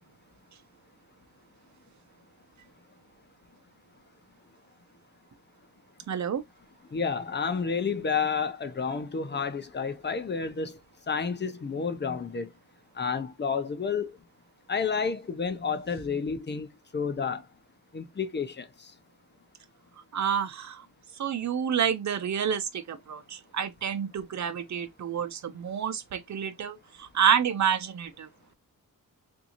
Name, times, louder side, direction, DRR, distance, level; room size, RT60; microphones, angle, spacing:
voice 1, 6.1-6.4 20.1-20.8 21.2-26.8 27.1-28.3, right 8 dB, 50° right, 0.7 m, -28 dB
voice 2, 6.9-10.8 11.1-12.5 13.0-14.1 14.7-16.7 16.9-17.5 17.9-18.9, left 5 dB, 30° left, 0.6 m, -30 dB
3.6 x 2.7 x 2.9 m
cardioid pair, 95°, 35 cm